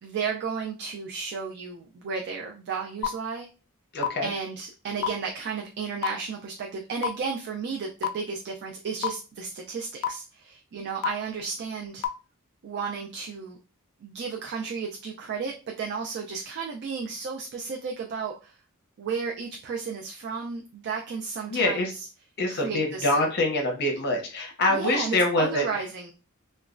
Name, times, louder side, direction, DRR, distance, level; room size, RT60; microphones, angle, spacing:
voice 1, 0.0-3.5 4.2-12.0 12.6-13.6 14.0-18.5 19.0-22.1 22.5-23.3 24.7-26.1, right 5 dB, 50° right, 1 dB, 0.4 m, -33 dB
sound 1, 3.0-3.1 4.0-4.1 5.0-5.1 6.0-6.1 7.0-7.1 8.0-8.1 9.0-9.1 10.0-10.1 11.0-11.1 12.0-12.1, left 11 dB, 85° left, 0.3 m, -24 dB
voice 2, 3.9-4.3 21.5-21.9 22.4-25.6, left 2 dB, 50° left, 2 dB, 0.6 m, -25 dB
3.0 x 2.1 x 2.4 m, 0.34 s
head